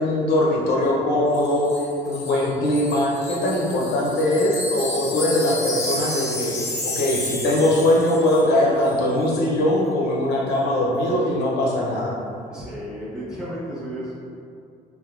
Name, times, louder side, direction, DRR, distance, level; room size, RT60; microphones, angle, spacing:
voice 1, 0.0-1.7 2.0-6.5 6.8-12.2, left 1 dB, 80° left, -4 dB, 0.7 m, -21 dB
Wind chime, 1.3-8.6 8.8-9.0, left 2 dB, 15° left, 0.6 m, -31 dB
voice 2, 12.5-14.1, equal, 5° right, -9 dB, 1.1 m, -33 dB
3.5 x 2.6 x 2.4 m, 2.4 s
cardioid pair, 110°, 17 cm